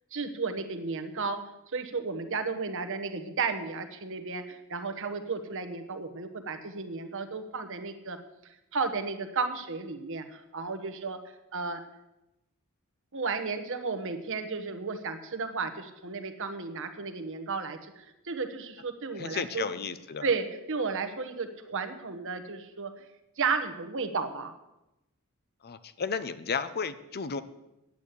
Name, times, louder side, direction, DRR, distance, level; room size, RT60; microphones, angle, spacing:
voice 1, 0.1-1.4 1.7-8.2 8.7-11.2 11.5-11.8 13.1-19.7 20.2-22.9 23.4-24.5, right 4 dB, 60° right, 8 dB, 1.2 m, -33 dB
voice 2, 19.2-20.3 25.6-27.4, left 5 dB, 45° left, 13 dB, 0.6 m, -33 dB
9.6 x 8.2 x 8.2 m, 0.93 s
head